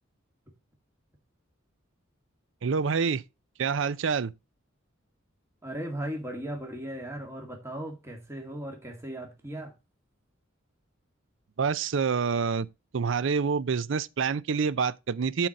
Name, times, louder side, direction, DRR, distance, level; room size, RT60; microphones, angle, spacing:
voice 1, 2.6-3.2 3.6-4.3 11.6-12.7 12.9-15.5, right 5 dB, 65° right, 0.5 m, -27 dB
voice 2, 5.6-9.7, right 1 dB, 15° right, 2.0 m, -37 dB
7.7 x 4.4 x 6.4 m
head